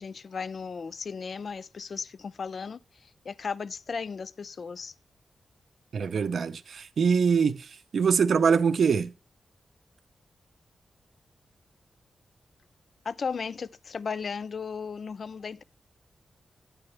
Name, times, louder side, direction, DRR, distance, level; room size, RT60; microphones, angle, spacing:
voice 1, 0.0-4.9 13.0-15.6, left 5 dB, 50° left, 0.4 m, -35 dB
voice 2, 5.9-9.1, right 6 dB, 65° right, 0.5 m, -24 dB
9.8 x 7.7 x 3.2 m
wide cardioid pair, 160°, 0 cm